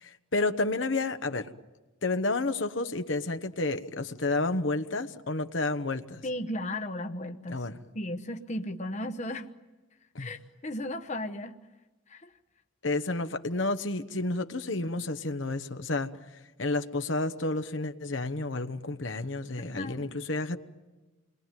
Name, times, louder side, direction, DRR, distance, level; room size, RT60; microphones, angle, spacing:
voice 1, 0.0-1.5 2.0-6.2 7.5-7.8 10.1-10.3 12.8-16.1 16.6-20.6, left 2 dB, 65° left, 8 dB, 1.1 m, -30 dB
voice 2, 6.2-7.7 7.9-9.5 10.2-11.5 12.1-12.3 19.6-20.0, left 1 dB, 35° left, 7 dB, 1.0 m, -35 dB
29.5 x 22.0 x 9.2 m, 1.2 s
head